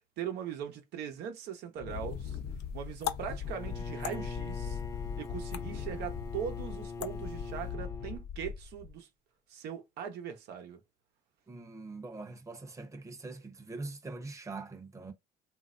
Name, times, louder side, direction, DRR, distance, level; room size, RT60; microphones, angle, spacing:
voice 1, 0.2-2.4 2.7-4.8 5.2-9.1 9.5-10.8, right 8 dB, 85° right, 0.9 m, -40 dB
Wind, 1.7-8.9, left 6 dB, 50° left, 0.8 m, -40 dB
sound 1, 1.9-7.7, left 12 dB, 80° left, 0.5 m, -45 dB
Bowed string instrument, 3.4-8.2, left 4 dB, 20° left, 0.3 m, -43 dB
voice 2, 11.5-15.1, right 3 dB, 20° right, 0.8 m, -43 dB
3.1 x 2.5 x 2.5 m
cardioid pair, 110°, 17 cm